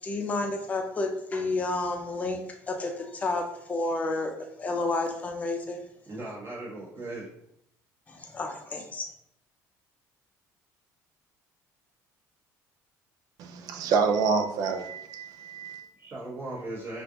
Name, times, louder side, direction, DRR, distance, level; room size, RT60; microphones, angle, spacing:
voice 1, 0.0-5.8 8.1-9.1, left 2 dB, 20° left, 0.6 m, -31 dB
voice 2, 6.1-7.3 16.0-17.0, right 2 dB, 35° right, 1.6 m, -38 dB
voice 3, 13.4-15.9, right 5 dB, 65° right, 0.5 m, -27 dB
5.4 x 2.5 x 2.9 m
cardioid pair, 145°, 7 cm